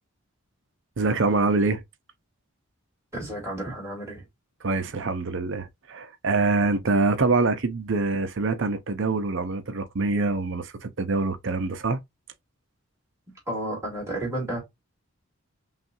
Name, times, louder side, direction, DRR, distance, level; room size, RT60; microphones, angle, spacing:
voice 1, 1.0-1.8 4.6-12.0, right 3 dB, 60° right, 0.7 m, -25 dB
voice 2, 3.1-4.2 6.8-6.9 13.5-14.6, right 1 dB, 15° right, 2.5 m, -32 dB
5.7 x 2.4 x 2.6 m
head